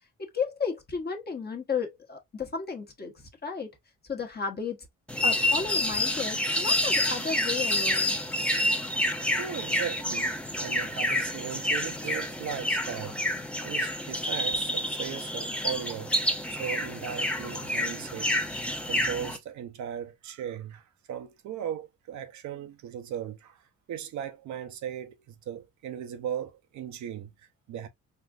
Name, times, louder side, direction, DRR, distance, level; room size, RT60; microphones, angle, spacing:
voice 1, 0.2-3.7 4.0-4.8 5.2-8.2, left 5 dB, 30° left, 1.1 m, -33 dB
sound 1, 5.1-19.4, left 1 dB, 5° left, 0.7 m, -28 dB
voice 2, 9.4-13.2 13.6-16.2 16.5-18.3 18.9-27.9, right 9 dB, 70° right, 0.7 m, -37 dB
4.1 x 2.5 x 2.4 m
cardioid pair, 90°, 30 cm